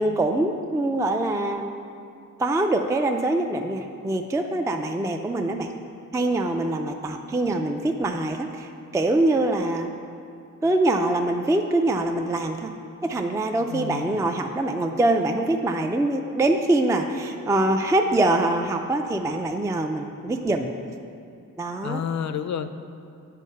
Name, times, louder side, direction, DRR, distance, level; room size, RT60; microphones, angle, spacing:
voice 1, 0.0-1.6 2.4-5.7 6.1-9.9 10.6-12.7 13.0-20.7 21.6-22.0, right 2 dB, 10° right, 5 dB, 0.3 m, -24 dB
voice 2, 13.6-14.2 21.8-22.7, left 8 dB, 55° left, 10 dB, 0.4 m, -30 dB
8.3 x 4.5 x 5.4 m, 2.6 s
wide cardioid pair, 105°, 33 cm